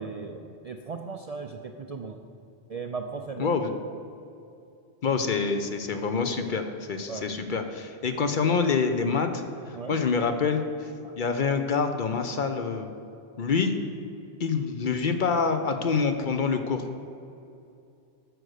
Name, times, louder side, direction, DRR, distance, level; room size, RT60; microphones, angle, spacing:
voice 1, 0.0-2.2 2.7-3.5 7.1-7.3 9.7-10.0 11.0-11.2, right 4 dB, 55° right, 4 dB, 0.4 m, -37 dB
voice 2, 3.4-3.7 5.0-10.9 11.2-12.9 13.4-13.7 14.4-16.9, left 5 dB, 55° left, 7 dB, 0.7 m, -26 dB
9.3 x 6.3 x 6.4 m, 2.7 s
omnidirectional pair, 1.1 m